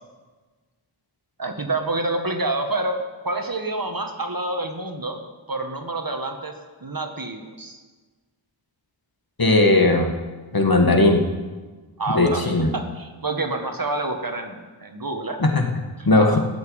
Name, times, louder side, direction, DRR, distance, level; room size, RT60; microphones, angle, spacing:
voice 1, 1.4-3.0 3.2-5.2 5.5-6.5 6.8-7.8 12.0-15.4 16.0-16.1, right 2 dB, 45° right, 4 dB, 1.7 m, -28 dB
voice 2, 9.4-10.1 10.5-11.2 12.1-12.7 15.4-15.6 16.1-16.4, left 2 dB, 50° left, 3 dB, 1.9 m, -17 dB
14.0 x 6.4 x 8.8 m, 1.3 s
wide cardioid pair, 45°, 47 cm